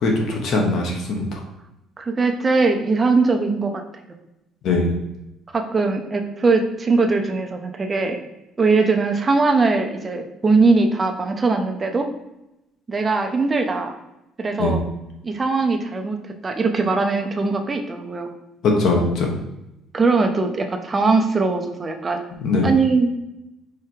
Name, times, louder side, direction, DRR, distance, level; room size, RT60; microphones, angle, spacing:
voice 1, 0.0-1.4 4.6-4.9 14.6-14.8 18.6-19.3 22.4-22.7, left 3 dB, 45° left, 1 dB, 1.4 m, -20 dB
voice 2, 2.0-3.8 5.5-8.2 8.6-12.1 12.9-13.9 14.4-14.8 15.2-16.2 16.4-18.3 19.9-22.2 22.6-23.1, right 3 dB, 20° right, 5 dB, 0.6 m, -20 dB
4.9 x 4.7 x 4.6 m, 0.90 s
cardioid pair, 170°, 0 cm